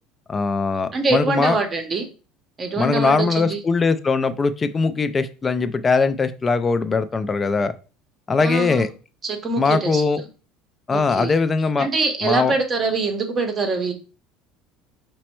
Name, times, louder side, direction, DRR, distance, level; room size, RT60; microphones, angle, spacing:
voice 1, 0.3-1.6 2.8-7.7 8.3-8.9 9.6-10.2 10.9-11.9 12.2-12.5, left 4 dB, 15° left, 11 dB, 0.3 m, -21 dB
voice 2, 0.9-2.1 2.6-3.6 8.4-8.9 9.2-10.0 10.9-11.3 11.8-13.9, right 3 dB, 20° right, 6 dB, 0.7 m, -24 dB
5.2 x 2.1 x 4.4 m, 0.34 s
cardioid pair, 170°, 0 cm